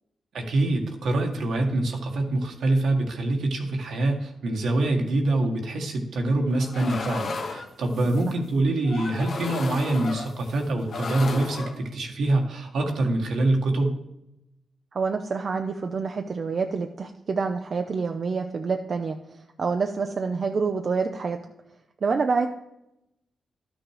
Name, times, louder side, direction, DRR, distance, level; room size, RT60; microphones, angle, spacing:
voice 1, 0.3-13.9, right 2 dB, 75° right, 2 dB, 1.7 m, -25 dB
sound 1, 6.5-8.4 8.8-10.6 10.9-11.8, left 3 dB, 65° left, 1.1 m, -34 dB
voice 2, 14.9-21.4 22.0-22.5, right 4 dB, 55° right, 5 dB, 0.6 m, -27 dB
12.0 x 6.2 x 4.9 m, 0.87 s
cardioid pair, 65°, 0 cm